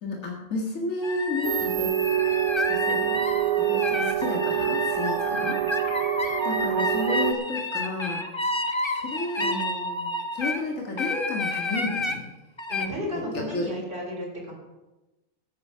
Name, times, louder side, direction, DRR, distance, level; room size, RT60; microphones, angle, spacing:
voice 1, 0.0-2.0 2.6-3.2 3.5-5.6 5.9-8.3 8.8-9.5 10.3-12.3 13.1-13.7, left 3 dB, 70° left, -1 dB, 2.3 m, -32 dB
sound 1, 1.0-10.6 11.0-12.2 12.6-12.9, left 2 dB, 25° left, 0.9 m, -30 dB
sound 2, 1.4-7.3, right 12 dB, 70° right, 1.0 m, -26 dB
voice 2, 3.9-4.2 5.3-5.5 9.4-10.1 12.7-14.5, equal, 40° right, -3 dB, 4.2 m, -34 dB
13.0 x 9.3 x 5.7 m, 1.1 s
omnidirectional pair, 1.4 m